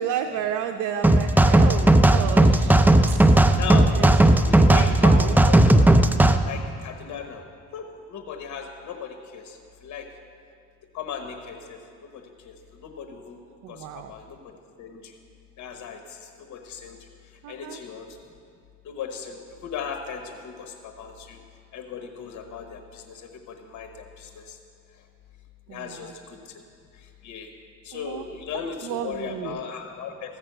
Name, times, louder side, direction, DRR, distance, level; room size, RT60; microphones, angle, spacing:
voice 1, 0.0-2.8 3.1-3.2 4.0-4.1 4.6-5.4 13.6-14.1 17.4-17.8 25.7-26.1 27.9-28.3 28.8-29.6, right 9 dB, 90° right, 5 dB, 0.6 m, -32 dB
sound 1, 1.0-6.4, right 1 dB, 5° right, 0.5 m, -16 dB
voice 2, 3.5-3.9 4.3-5.9 6.4-7.4 7.7-10.1 10.9-11.8 12.1-13.4 13.7-14.5 14.8-15.1 15.6-17.1 17.5-18.1 18.8-21.4 21.7-24.6 25.7-26.5 26.9-27.5 27.8-30.4, left 7 dB, 70° left, 5 dB, 1.1 m, -37 dB
14.5 x 6.0 x 7.9 m, 2.4 s
cardioid pair, 90°, 30 cm